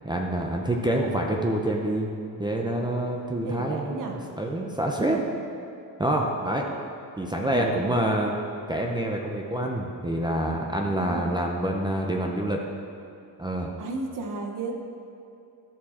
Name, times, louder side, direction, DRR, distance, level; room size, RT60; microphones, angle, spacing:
voice 1, 0.0-2.1 2.4-4.0 4.4-5.2 6.0-6.7 7.2-8.4 8.7-12.6 13.4-13.7, right 1 dB, 10° right, 0 dB, 0.6 m, -26 dB
voice 2, 3.4-4.2 5.1-5.5 7.4-7.8 11.0-11.3 13.8-14.7, right 3 dB, 55° right, 2 dB, 0.9 m, -34 dB
13.0 x 4.7 x 4.2 m, 2.7 s
cardioid pair, 115°, 39 cm